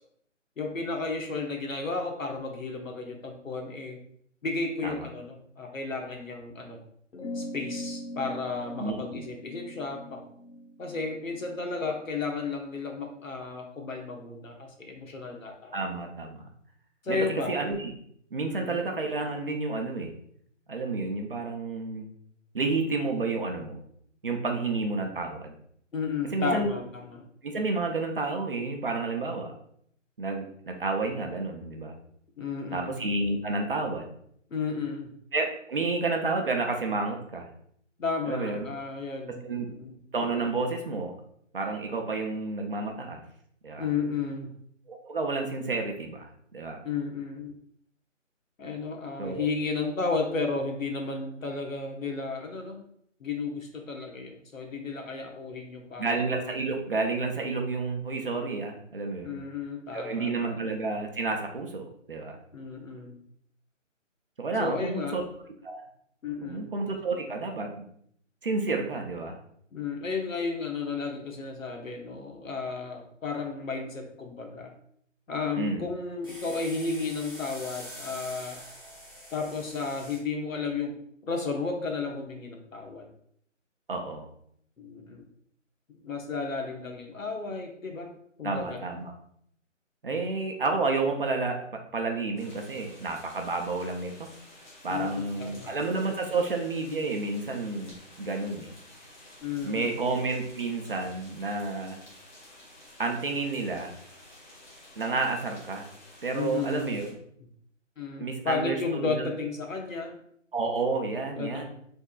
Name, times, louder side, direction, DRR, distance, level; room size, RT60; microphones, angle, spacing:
voice 1, 0.6-4.0 4.4-6.8 7.3-10.2 10.8-15.8 17.0-17.5 18.5-18.9 25.9-27.2 32.4-33.0 34.5-35.1 38.0-40.0 43.8-44.5 46.8-47.6 48.6-52.8 53.2-56.1 59.2-60.5 62.5-63.2 64.6-65.2 66.2-66.7 69.7-74.7 75.3-78.6 79.3-80.9 81.2-83.1 84.8-85.3 85.9-88.1 88.4-88.8 94.9-95.7 99.4-100.0 106.3-107.0 108.0-110.2 111.3-111.6, left 4 dB, 90° left, 2 dB, 1.2 m, -33 dB
sound 1, 7.1-12.0, equal, 65° left, 1.0 m, -40 dB
voice 2, 15.7-16.4 17.1-17.2 17.5-18.0 18.3-20.1 20.7-22.1 22.5-23.8 24.2-25.6 26.3-26.7 27.4-29.5 30.2-31.9 32.7-34.1 35.3-37.5 38.3-38.7 39.4-39.7 40.1-41.1 41.5-43.2 43.6-43.9 44.9-46.8 49.2-49.5 56.0-59.4 59.9-62.4 64.4-65.2 65.6-65.8 66.4-67.8 68.4-69.4 75.6-75.9 83.9-84.3 88.4-89.0 90.0-91.6 91.9-94.3 94.8-98.7 99.6-102.0 103.0-103.9 105.0-105.9 106.2-107.1 108.2-109.3 110.5-111.6, right 3 dB, 45° right, 3 dB, 0.7 m, -30 dB
sound 2, 76.2-80.2, equal, 20° left, 0.7 m, -44 dB
sound 3, 92.4-107.1, left 1 dB, 35° left, 1.3 m, -52 dB
5.7 x 3.6 x 2.3 m, 0.67 s
hypercardioid pair, 170°, 38 cm